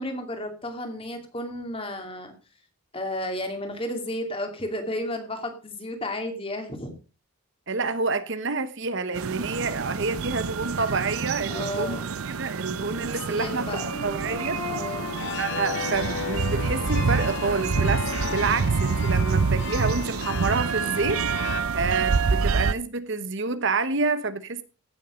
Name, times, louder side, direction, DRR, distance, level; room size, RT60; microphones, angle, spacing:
voice 1, 0.0-2.3 2.9-6.9 11.5-12.0 12.9-13.8 14.7-15.2, left 1 dB, 25° left, 2.6 m, -33 dB
voice 2, 7.7-12.0 12.3-14.6 15.4-18.0 18.3-24.6, right 4 dB, 55° right, 1.0 m, -28 dB
sound 1, 9.1-22.7, right 5 dB, 75° right, 0.6 m, -27 dB
sound 2, 13.4-18.4, left 5 dB, 70° left, 2.0 m, -36 dB
sound 3, 15.0-21.6, left 6 dB, 55° left, 1.0 m, -36 dB
16.5 x 7.4 x 5.1 m
head